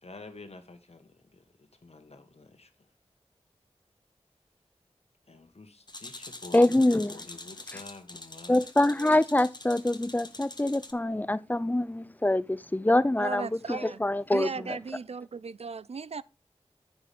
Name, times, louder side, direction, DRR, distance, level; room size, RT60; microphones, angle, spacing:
voice 1, 0.0-1.4 1.8-2.9 5.3-8.6, left 3 dB, 65° left, 1.5 m, -49 dB
sound 1, 5.9-10.9, left 2 dB, 40° left, 1.1 m, -45 dB
voice 2, 6.5-7.1 8.5-14.5, left 1 dB, 15° left, 0.5 m, -25 dB
voice 3, 13.2-14.0 14.3-16.2, right 5 dB, 65° right, 0.4 m, -36 dB
10.0 x 6.9 x 3.6 m
wide cardioid pair, 60°, 11 cm